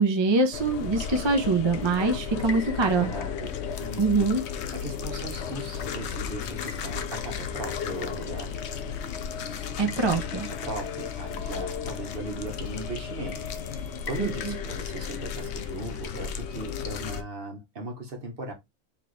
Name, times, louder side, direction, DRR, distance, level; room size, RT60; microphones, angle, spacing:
voice 1, 0.0-3.1 4.0-4.4 9.8-10.5 14.2-14.6, right 3 dB, 30° right, 0.6 m, -24 dB
sound 1, 0.5-17.2, left 7 dB, 75° left, 0.9 m, -34 dB
voice 2, 2.3-4.3 4.7-8.7 10.6-13.4 13.8-18.5, right 2 dB, 55° right, 1.3 m, -38 dB
4.4 x 3.0 x 3.1 m
omnidirectional pair, 1.1 m